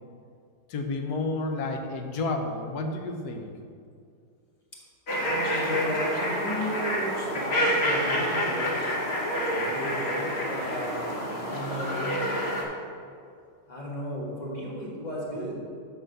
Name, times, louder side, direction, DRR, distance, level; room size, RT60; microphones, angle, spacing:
voice 1, 0.7-3.5 8.8-8.9, left 2 dB, 70° left, 4 dB, 1.2 m, -31 dB
sound 1, 5.1-12.6, equal, 40° left, 1.2 m, -28 dB
voice 2, 5.2-8.8 9.5-12.2 13.7-15.6, equal, 25° left, -6 dB, 1.7 m, -34 dB
5.9 x 5.3 x 6.5 m, 2.3 s
omnidirectional pair, 1.9 m